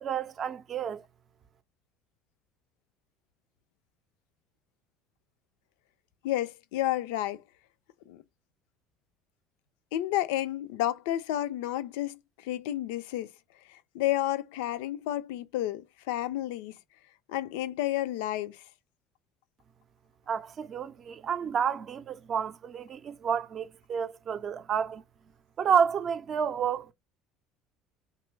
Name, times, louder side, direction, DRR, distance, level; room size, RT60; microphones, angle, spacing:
voice 1, 0.0-1.0 20.3-25.0 25.6-26.9, right 7 dB, 45° right, 0.5 m, -30 dB
voice 2, 6.2-7.4 8.1-8.2 9.9-13.3 13.7-16.7 17.3-18.6, left 14 dB, 75° left, 0.3 m, -31 dB
2.9 x 2.3 x 3.1 m
hypercardioid pair, 65°, 0 cm